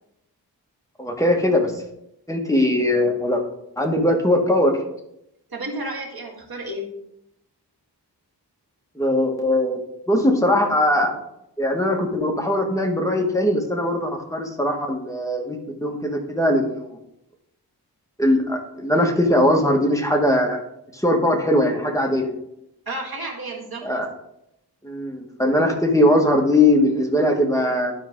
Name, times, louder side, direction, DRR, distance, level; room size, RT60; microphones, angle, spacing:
voice 1, 1.0-1.8 2.3-3.4 3.8-4.8 8.9-9.8 10.1-11.1 11.6-17.0 18.2-20.6 20.9-22.3 23.8-24.1 24.8-27.9, left 1 dB, 10° left, 1 dB, 1.5 m, -20 dB
voice 2, 5.5-6.9 22.9-23.9, right 1 dB, 60° right, -2 dB, 2.2 m, -31 dB
12.5 x 4.6 x 3.7 m, 0.80 s
wide cardioid pair, 70°, 41 cm